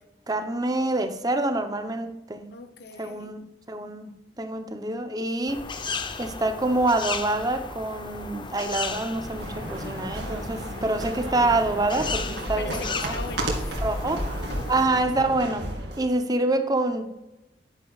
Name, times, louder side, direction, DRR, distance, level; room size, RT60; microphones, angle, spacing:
voice 1, 0.3-2.4 3.0-5.6 6.2-12.7 13.0-13.1 13.8-14.2 14.7-15.7 16.0-17.1, right 2 dB, 20° right, 8 dB, 0.8 m, -26 dB
voice 2, 2.5-3.3 9.6-10.0 12.6-13.8 14.0-14.2 14.5-14.6, left 3 dB, 60° left, 9 dB, 0.9 m, -40 dB
sound 1, 5.5-14.8, left 4 dB, 25° left, 0.7 m, -35 dB
sound 2, 8.9-16.1, right 1 dB, 65° right, 2.4 m, -33 dB
10.5 x 10.0 x 2.4 m, 0.95 s
head